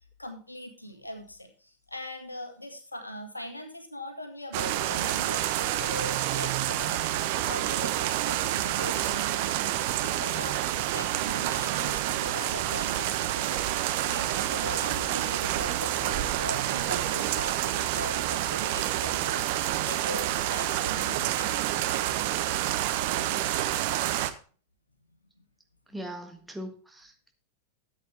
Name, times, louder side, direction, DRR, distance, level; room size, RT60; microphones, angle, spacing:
voice 1, 0.2-21.9, left 1 dB, 85° left, 5 dB, 2.0 m, -40 dB
sound 1, 4.5-24.3, right 13 dB, 50° right, 1.0 m, -28 dB
voice 2, 25.9-27.3, equal, 5° right, 3 dB, 1.7 m, -40 dB
13.5 x 8.3 x 3.4 m, 0.38 s
figure-of-eight pair, 90°, 0 cm